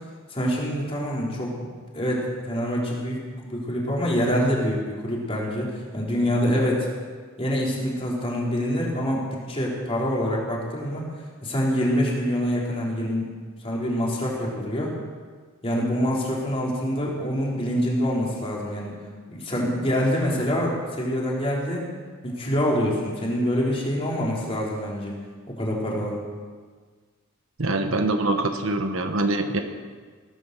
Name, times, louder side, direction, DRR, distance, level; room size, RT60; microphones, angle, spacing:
voice 1, 0.3-1.6 1.9-7.0 7.4-11.0 11.4-13.3 13.6-14.9 15.6-19.0 19.3-21.9 22.2-25.1 25.5-26.2, equal, 25° left, -4 dB, 3.7 m, -25 dB
voice 2, 27.6-29.6, right 2 dB, 70° right, 6 dB, 1.3 m, -24 dB
18.5 x 9.8 x 6.8 m, 1.5 s
head